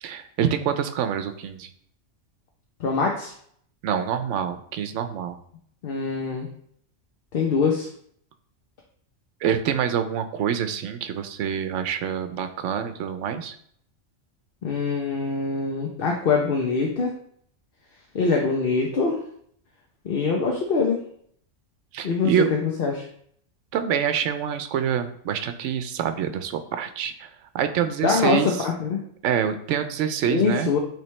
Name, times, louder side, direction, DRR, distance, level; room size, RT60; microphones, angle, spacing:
voice 1, 0.0-1.7 3.8-5.4 9.4-13.6 21.9-22.5 23.7-27.3 27.5-28.6 29.2-30.7, right 8 dB, 80° right, 9 dB, 0.9 m, -26 dB
voice 2, 2.8-3.3 5.8-6.5 7.3-7.9 14.6-17.1 18.1-19.2 20.0-21.0 22.0-23.1 28.0-29.0 30.2-30.8, left 4 dB, 55° left, 0 dB, 0.9 m, -23 dB
8.6 x 3.4 x 3.2 m, 0.64 s
omnidirectional pair, 1.3 m